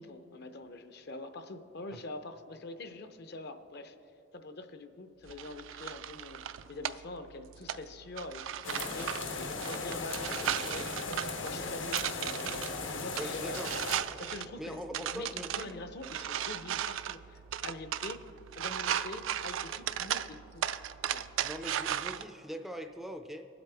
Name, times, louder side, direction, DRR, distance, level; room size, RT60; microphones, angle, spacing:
voice 1, 0.0-4.0 4.3-6.4 6.7-13.6 14.2-18.3 18.5-20.7 21.1-21.3, left 2 dB, 55° left, 8 dB, 0.6 m, -45 dB
Seamstress' Studio Handling Buttons, 5.3-22.2, right 10 dB, 80° right, 0.4 m, -37 dB
sound 1, 8.6-14.0, left 3 dB, 80° left, 1.1 m, -37 dB
voice 2, 13.2-13.7 14.6-15.7 21.4-23.5, equal, ahead, 5 dB, 0.4 m, -41 dB
21.5 x 8.0 x 3.4 m, 2.8 s
head